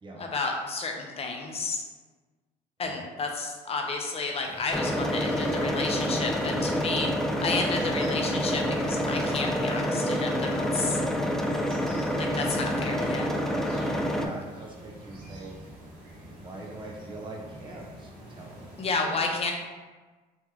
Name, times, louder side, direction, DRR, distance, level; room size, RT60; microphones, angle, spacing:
voice 1, 0.2-1.8 2.8-11.0 12.2-13.4 18.8-19.5, left 3 dB, 35° left, 2 dB, 0.6 m, -31 dB
sound 1, 4.4-18.9, right 1 dB, 55° right, 1.3 m, -48 dB
sound 2, 4.7-14.2, equal, ahead, 0.3 m, -27 dB
voice 2, 13.3-13.8 14.2-15.6 16.4-18.8 19.1-19.2, right 2 dB, 30° right, -1 dB, 0.8 m, -43 dB
3.2 x 3.0 x 3.6 m, 1.3 s
cardioid pair, 110°, 17 cm